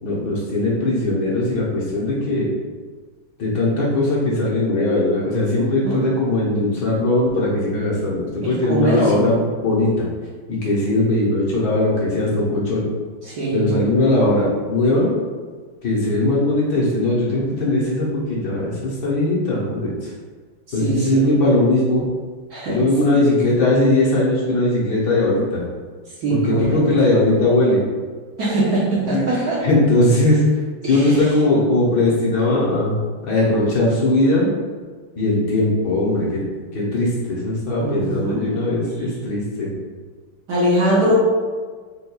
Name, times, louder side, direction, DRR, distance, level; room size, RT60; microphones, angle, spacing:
voice 1, 0.0-2.5 3.4-10.1 10.5-12.9 13.5-15.1 15.8-20.1 20.7-22.1 22.7-25.6 26.3-27.8 29.1-30.4 30.9-33.0 33.2-34.5 35.2-36.4 36.7-39.7, left 2 dB, 65° left, -6 dB, 1.3 m, -19 dB
voice 2, 5.5-6.0 8.4-9.3 13.2-13.7 20.8-21.3 22.5-22.8 26.2-26.8 28.4-29.6 30.8-31.3 37.8-38.4 40.5-41.1, right 1 dB, 60° right, -7 dB, 1.2 m, -22 dB
5.4 x 2.2 x 2.2 m, 1.5 s
omnidirectional pair, 2.2 m